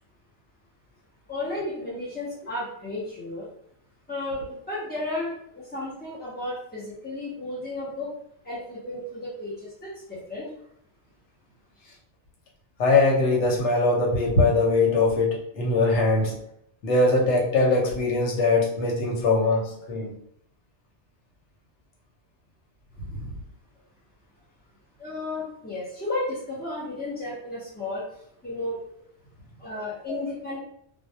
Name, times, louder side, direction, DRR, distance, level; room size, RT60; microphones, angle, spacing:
voice 1, 1.3-3.5 4.1-8.1 8.4-10.5 25.0-28.0 28.4-28.8 29.6-30.6, left 2 dB, 15° left, -9 dB, 0.3 m, -33 dB
voice 2, 12.8-16.3 16.8-20.1 23.1-23.3 30.1-30.2, left 3 dB, 85° left, -2 dB, 1.0 m, -22 dB
2.2 x 2.1 x 2.7 m, 0.71 s
omnidirectional pair, 1.2 m